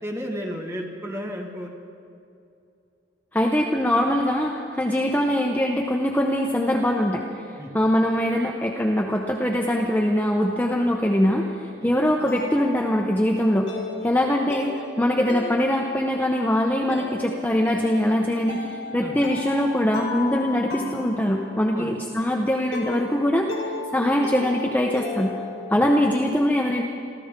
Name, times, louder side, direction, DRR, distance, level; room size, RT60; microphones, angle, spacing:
voice 1, 0.0-1.7 7.6-7.7 11.8-11.9 19.0-19.2 21.7-22.0 25.7-25.8, equal, 15° right, 0 dB, 1.8 m, -33 dB
voice 2, 3.3-7.2 7.7-11.5 11.8-13.7 14.0-23.5 23.9-25.3 25.7-26.8, left 1 dB, 10° left, 0 dB, 0.8 m, -22 dB
sound 1, 11.4-26.2, left 3 dB, 70° left, 3.2 m, -36 dB
27.5 x 14.0 x 3.7 m, 2.5 s
head